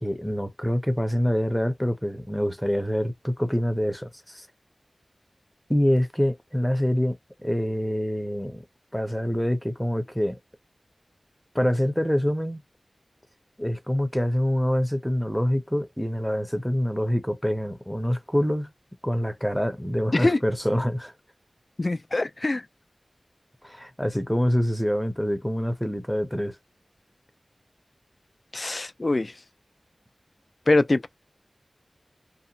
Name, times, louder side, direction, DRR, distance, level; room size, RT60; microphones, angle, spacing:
voice 1, 0.0-4.5 5.7-7.2 7.4-8.6 8.9-10.4 11.5-12.6 13.6-18.7 19.0-21.1 23.6-26.6, equal, 5° left, 0.6 m, -25 dB
voice 2, 21.8-22.6 28.5-29.3 30.7-31.1, left 2 dB, 45° left, 0.3 m, -23 dB
2.8 x 2.0 x 2.6 m
wide cardioid pair, 70°, 0 cm